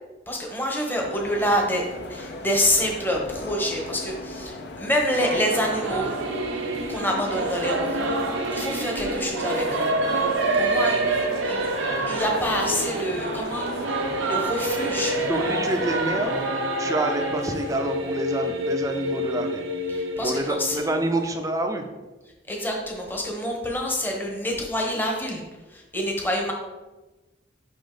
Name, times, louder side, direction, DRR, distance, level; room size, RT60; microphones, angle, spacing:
voice 1, 0.3-1.8 2.1-6.1 6.9-9.9 10.5-11.0 11.4-11.6 12.1-13.9 14.2-15.2 19.9-20.8 22.5-25.4 25.7-26.5, equal, 10° left, 0 dB, 0.9 m, -27 dB
sound 1, 1.0-16.5, left 2 dB, 60° left, 0.7 m, -38 dB
Singing / Musical instrument, 5.1-21.4, right 2 dB, 90° right, 0.8 m, -27 dB
voice 2, 15.2-16.3 16.8-19.7 20.2-21.9, right 1 dB, 15° right, 5 dB, 0.5 m, -27 dB
5.2 x 5.2 x 3.9 m, 1.2 s
head